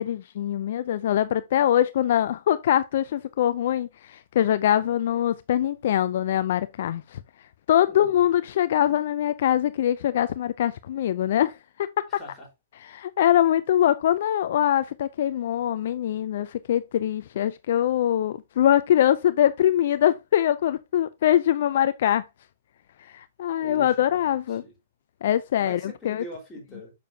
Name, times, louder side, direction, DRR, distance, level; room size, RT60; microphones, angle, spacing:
voice 1, 0.0-7.2 7.7-11.5 11.8-12.0 12.9-22.2 23.1-24.6 25.2-25.8 26.0-26.2, left 11 dB, 55° left, 0.5 m, -23 dB
voice 2, 12.1-12.5 23.6-24.7 25.6-26.9, equal, 10° left, 4.3 m, -43 dB
6.8 x 6.6 x 2.7 m
hypercardioid pair, 160°, 0 cm